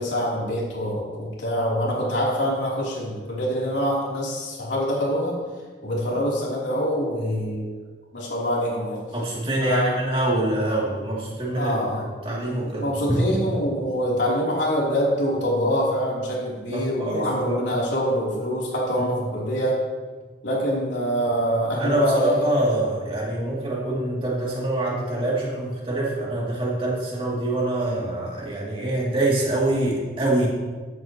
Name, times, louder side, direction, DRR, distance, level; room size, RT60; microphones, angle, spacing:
voice 1, 0.0-5.3 5.8-7.7 8.1-9.0 9.6-10.0 11.5-12.0 12.8-19.8 20.4-22.7, equal, 80° left, -5 dB, 3.4 m, -25 dB
voice 2, 9.1-11.9 12.2-13.2 16.7-17.6 19.0-19.1 21.7-30.5, right 1 dB, 30° right, -5 dB, 2.8 m, -25 dB
15.5 x 9.4 x 3.1 m, 1.4 s
head